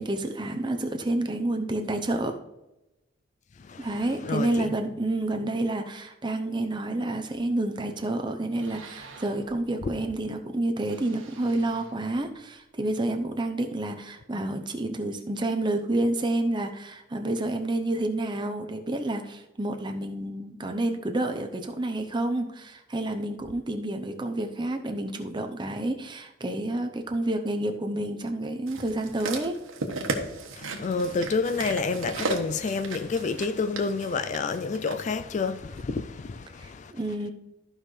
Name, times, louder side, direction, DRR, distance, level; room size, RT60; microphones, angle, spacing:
voice 1, 0.0-2.3 3.8-29.6 36.6-37.3, right 1 dB, 25° right, 0.7 m, -29 dB
voice 2, 4.2-4.7 9.8-9.9 30.6-36.9, left 4 dB, 35° left, 0.3 m, -29 dB
Balloon being inflated a couple of times and emptied., 7.3-7.9 8.3-10.1 10.8-12.6, right 4 dB, 75° right, 1.5 m, -49 dB
sound 1, 28.7-35.0 35.8-35.9, right 2 dB, 90° right, 1.3 m, -35 dB
14.0 x 5.5 x 3.2 m
head